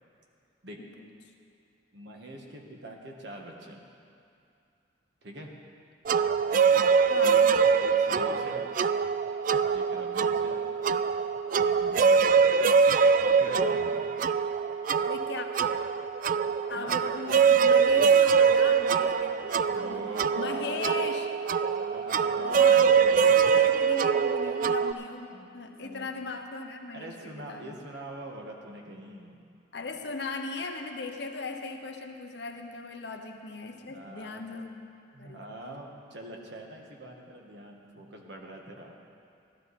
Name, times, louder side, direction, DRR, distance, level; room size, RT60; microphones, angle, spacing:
voice 1, 0.8-1.1 7.1-7.5 13.4-13.9 15.0-15.5 16.7-20.1 20.4-21.3 22.4-27.7 29.7-34.8 35.2-35.5, left 3 dB, 60° left, 4 dB, 0.9 m, -38 dB
voice 2, 1.9-3.8 5.2-5.5 7.2-7.4 7.8-8.7 9.7-10.7 11.6-12.4 13.2-14.1 16.7-17.0 19.7-20.9 21.7-23.8 25.3-25.5 25.8-26.1 26.9-29.4 30.0-30.1 33.9-34.7 35.1-38.9, right 1 dB, 60° right, 0 dB, 1.5 m, -44 dB
sound 1, 6.1-24.9, right 6 dB, 45° right, 0.3 m, -23 dB
16.0 x 12.0 x 4.2 m, 2.5 s
head